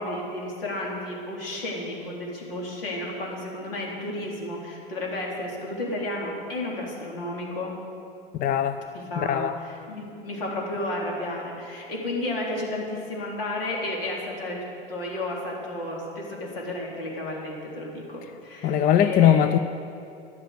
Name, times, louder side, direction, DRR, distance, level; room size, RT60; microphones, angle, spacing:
voice 1, 0.0-7.8 8.9-19.4, left 1 dB, 75° left, -2 dB, 3.6 m, -32 dB
voice 2, 8.4-8.8 9.2-9.5 18.6-19.6, left 9 dB, 30° left, 10 dB, 0.5 m, -20 dB
13.5 x 11.0 x 6.7 m, 2.6 s
figure-of-eight pair, 85°, 29 cm